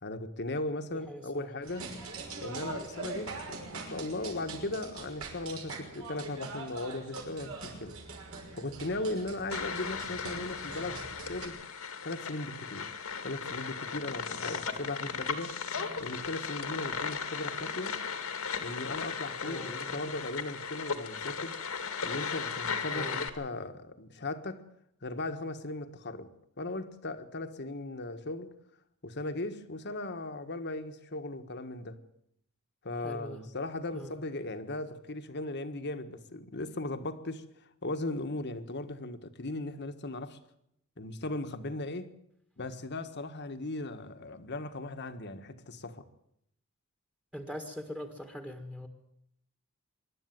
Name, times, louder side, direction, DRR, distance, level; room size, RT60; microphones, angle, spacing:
voice 1, 0.0-1.9 2.4-8.0 8.5-11.0 11.3-11.6 12.0-12.9 13.2-15.6 16.0-18.0 18.6-21.6 22.0-24.7 25.0-28.5 29.0-32.0 32.8-37.4 37.8-40.4 41.0-42.1 42.6-46.0, left 2 dB, 55° left, 1.6 m, -37 dB
voice 2, 0.9-1.5 19.4-20.0 22.9-23.2 33.0-33.4 33.9-34.1 47.3-48.9, equal, 5° right, 1.8 m, -42 dB
sound 1, 1.6-11.5, right 3 dB, 70° right, 5.9 m, -43 dB
sound 2, 9.5-23.3, left 6 dB, 75° left, 2.1 m, -36 dB
24.5 x 12.0 x 9.3 m
head